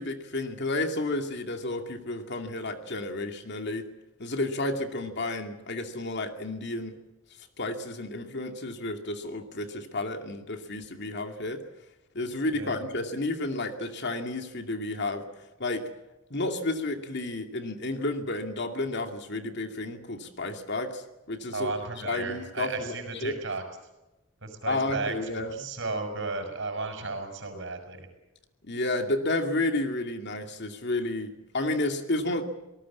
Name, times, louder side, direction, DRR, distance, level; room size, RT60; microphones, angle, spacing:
voice 1, 0.0-3.9 4.2-7.0 7.6-11.6 12.1-15.3 15.6-15.8 16.3-21.7 22.0-23.0 23.2-23.3 24.7-25.5 28.6-32.4, left 2 dB, 55° left, 5 dB, 2.5 m, -31 dB
voice 2, 21.5-23.6 24.4-28.1, right 3 dB, 60° right, 6 dB, 6.3 m, -34 dB
26.5 x 19.0 x 7.4 m, 1.0 s
head